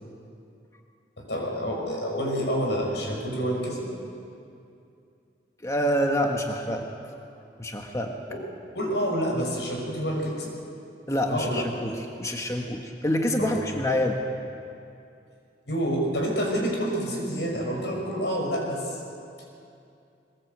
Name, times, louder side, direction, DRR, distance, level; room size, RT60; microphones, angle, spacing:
voice 1, 1.2-3.9 8.3-8.4 8.7-10.5 11.3-11.6 13.4-13.6 15.7-19.0, equal, 85° left, 0 dB, 5.9 m, -28 dB
voice 2, 5.6-6.9 7.6-8.2 11.1-11.9 12.2-14.2, equal, 15° left, 2 dB, 1.3 m, -26 dB
21.5 x 20.0 x 8.1 m, 2.6 s
head